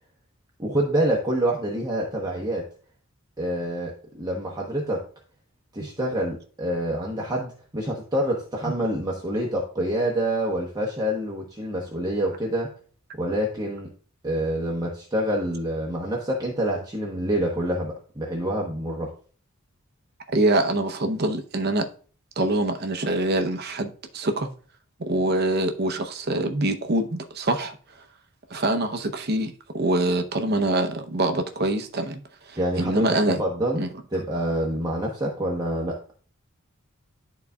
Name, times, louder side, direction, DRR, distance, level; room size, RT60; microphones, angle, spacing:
voice 1, 0.6-2.7 3.4-5.0 5.7-12.7 13.2-13.9 14.2-19.1 32.6-33.8 34.1-36.0, right 1 dB, 20° right, 1.0 m, -27 dB
voice 2, 20.3-21.9 22.4-24.5 25.0-27.8 28.5-32.2 32.5-33.4 33.8-33.9, right 1 dB, 50° right, 0.8 m, -24 dB
12.0 x 4.0 x 2.3 m
head